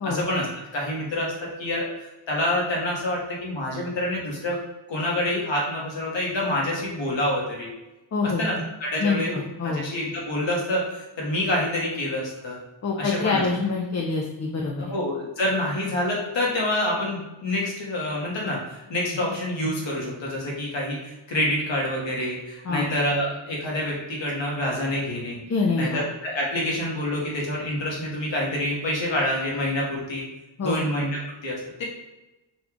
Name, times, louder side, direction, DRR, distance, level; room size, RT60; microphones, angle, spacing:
voice 1, 0.0-0.5 0.7-1.9 2.3-4.6 4.9-7.7 8.4-9.4 9.6-12.6 13.0-13.4 14.8-25.4 25.8-30.2 30.6-31.8, left 1 dB, 70° left, -3 dB, 1.4 m, -27 dB
voice 2, 8.1-8.6 9.0-9.8 12.8-14.9 22.6-22.9 25.5-26.0 30.6-30.8, left 4 dB, 35° left, 0 dB, 0.5 m, -26 dB
5.2 x 2.3 x 3.6 m, 1.0 s
wide cardioid pair, 110°, 46 cm